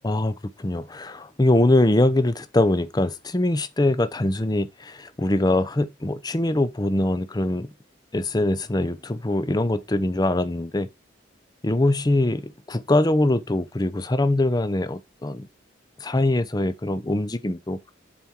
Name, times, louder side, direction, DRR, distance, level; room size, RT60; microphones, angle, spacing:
voice 1, 0.0-7.7 8.1-10.9 11.6-15.5 16.0-17.8, left 1 dB, 20° left, 0.6 m, -23 dB
7.2 x 4.3 x 4.7 m
head